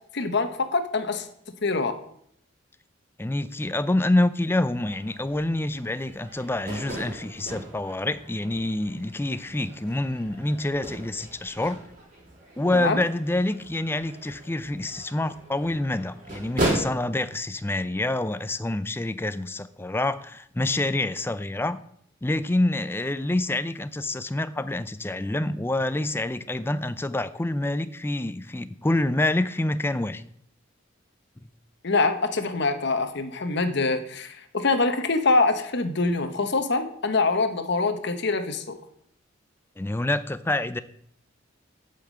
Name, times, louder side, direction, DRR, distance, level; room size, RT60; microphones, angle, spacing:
voice 1, 0.1-1.3 1.6-1.9 12.7-13.0 31.8-38.7, left 3 dB, 60° left, 9 dB, 1.0 m, -24 dB
voice 2, 3.2-11.8 12.6-21.8 22.2-30.2 39.8-40.8, left 1 dB, 10° left, 13 dB, 0.4 m, -27 dB
sound 1, 4.9-16.8, right 1 dB, 45° right, 3.9 m, -36 dB
8.3 x 5.8 x 7.4 m, 0.69 s
head